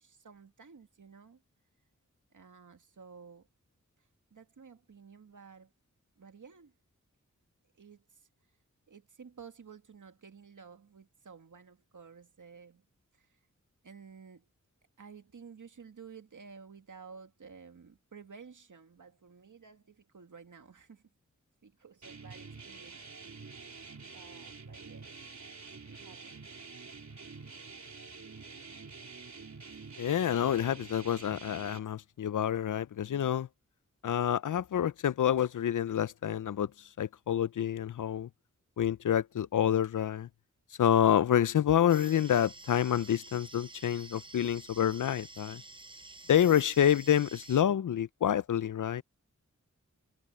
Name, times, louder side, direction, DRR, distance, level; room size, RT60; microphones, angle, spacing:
voice 1, 0.0-1.4 2.3-3.5 4.3-5.7 6.2-6.7 7.7-8.3 8.9-12.9 13.1-13.3 13.8-14.5 15.0-21.0 21.6-23.2 23.9-25.1 25.9-26.5, right 6 dB, 80° right, 2.2 m, -53 dB
sound 1, 22.0-31.8, right 4 dB, 65° right, 3.9 m, -48 dB
voice 2, 30.0-33.5 34.0-36.7 37.0-38.3 38.8-40.3 40.8-45.6 46.3-49.0, left 10 dB, 80° left, 0.5 m, -28 dB
sound 2, 41.9-47.6, right 2 dB, 15° right, 0.6 m, -50 dB
wide cardioid pair, 85°, 31 cm